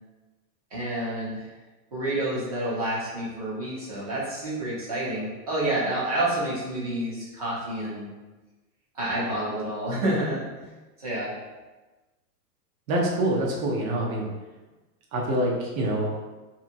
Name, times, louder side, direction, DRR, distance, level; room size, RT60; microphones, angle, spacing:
voice 1, 0.7-1.5 1.9-8.1 8.9-10.7 11.0-11.3, right 1 dB, 25° right, -7 dB, 0.3 m, -29 dB
voice 2, 12.9-14.2 15.1-16.2, right 1 dB, 55° right, -2 dB, 0.8 m, -25 dB
2.7 x 2.7 x 2.5 m, 1.2 s
supercardioid pair, 155°, 49 cm